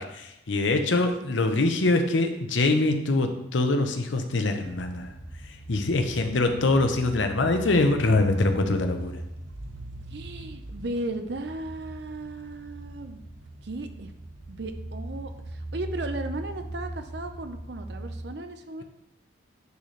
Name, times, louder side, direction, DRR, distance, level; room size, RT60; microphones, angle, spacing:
voice 1, 0.0-5.1 5.7-9.2, left 2 dB, 75° left, 6 dB, 0.8 m, -24 dB
voice 2, 1.2-1.9 10.1-13.2 13.6-14.1 14.5-18.8, right 2 dB, 60° right, 7 dB, 0.6 m, -36 dB
sound 1, 4.6-18.3, right 1 dB, 90° right, 0.8 m, -40 dB
9.4 x 4.1 x 3.2 m, 0.82 s
head